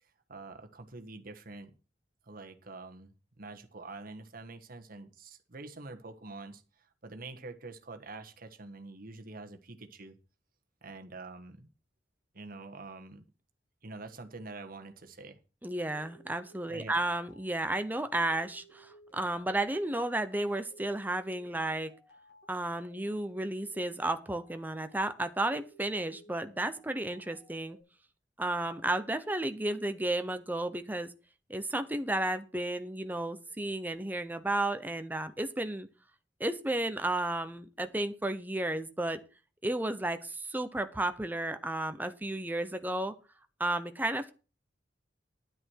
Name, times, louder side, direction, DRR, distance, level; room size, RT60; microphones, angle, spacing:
voice 1, 0.3-1.7 2.3-10.2 10.8-11.7 12.3-13.2 13.8-15.4 16.7-17.0, right 3 dB, 50° right, 1.4 m, -46 dB
voice 2, 15.6-21.9 22.5-27.8 28.4-31.1 31.5-35.9 36.4-39.2 39.6-43.1 43.6-44.3, right 1 dB, 10° right, 0.9 m, -33 dB
sound 1, 15.7-27.8, right 1 dB, 75° left, 6.5 m, -59 dB
10.5 x 9.6 x 4.7 m
head